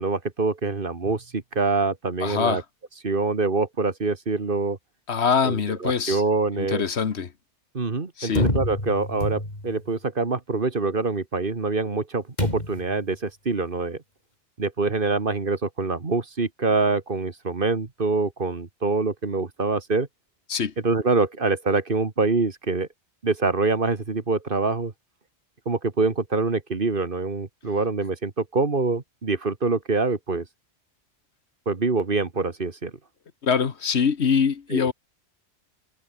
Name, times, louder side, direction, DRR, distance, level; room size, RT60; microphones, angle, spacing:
voice 1, 0.0-2.6 3.0-4.8 5.4-6.8 7.7-14.0 14.6-20.1 20.8-22.9 23.2-24.9 25.7-30.5 31.7-32.9 34.7-34.9, right 3 dB, 50° right, 2.0 m, -25 dB
voice 2, 2.2-2.6 5.1-6.2 6.6-7.3 8.2-8.5 20.5-20.7 33.4-34.9, left 6 dB, 65° left, 1.5 m, -23 dB
sound 1, 8.4-9.8 12.4-13.0, left 1 dB, 35° left, 5.5 m, -27 dB
omnidirectional pair, 1.2 m